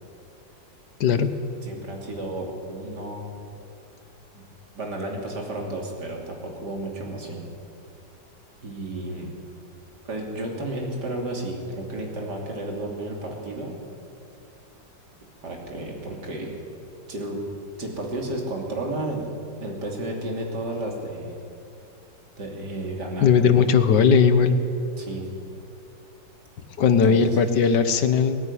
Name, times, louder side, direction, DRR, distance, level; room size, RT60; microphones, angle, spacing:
voice 1, 1.0-1.3 23.2-24.6 26.8-28.5, left 6 dB, 65° left, 10 dB, 1.7 m, -18 dB
voice 2, 1.6-3.3 4.3-4.5 4.8-7.4 8.6-9.3 10.1-13.8 15.4-16.5 17.1-17.4 17.8-19.3 19.6-21.3 22.4-23.3 25.0-25.3 26.9-27.2, right 1 dB, 60° right, 0 dB, 3.6 m, -32 dB
18.5 x 14.0 x 9.9 m, 2.5 s
omnidirectional pair, 2.0 m